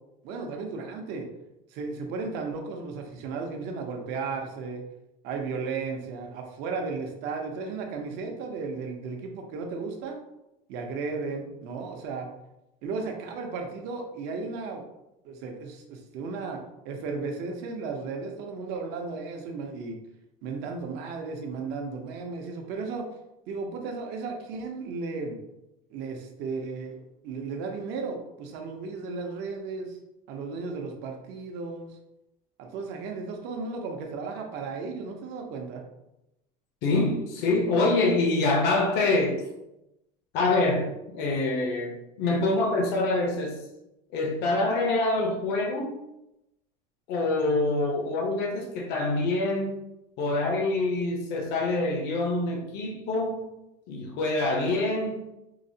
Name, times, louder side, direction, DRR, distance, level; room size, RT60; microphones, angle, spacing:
voice 1, 0.2-1.3 1.7-4.8 5.2-10.2 10.7-12.3 12.8-14.8 15.2-16.6 16.8-19.9 20.4-23.0 23.5-25.4 25.9-30.0 30.3-31.9 32.6-35.8, right 4 dB, 60° right, 2 dB, 0.7 m, -34 dB
voice 2, 36.8-39.4 40.3-43.6 44.1-46.0 47.1-49.8 50.2-53.6 53.9-55.3, left 2 dB, 60° left, 1 dB, 0.7 m, -26 dB
4.7 x 2.0 x 2.7 m, 0.89 s
cardioid pair, 140°, 20 cm